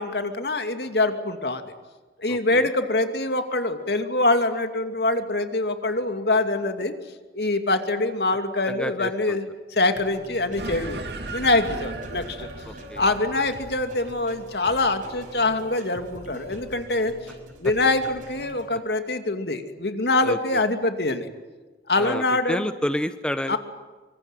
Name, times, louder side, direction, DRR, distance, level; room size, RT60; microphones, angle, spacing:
voice 1, 0.0-1.6 2.2-6.9 7.3-9.4 9.7-11.0 11.3-12.5 13.0-17.1 17.6-21.3 21.9-22.7 23.5-23.6, left 2 dB, 70° left, 7 dB, 2.7 m, -24 dB
voice 2, 2.3-2.7 8.7-9.4 12.7-13.1 20.2-20.6 22.0-23.6, equal, 5° left, 10 dB, 0.9 m, -30 dB
sound 1, 9.9-18.7, right 2 dB, 45° right, 5.9 m, -43 dB
sound 2, 10.6-15.3, right 2 dB, 70° right, 3.1 m, -37 dB
25.0 x 25.0 x 9.3 m, 1.3 s
head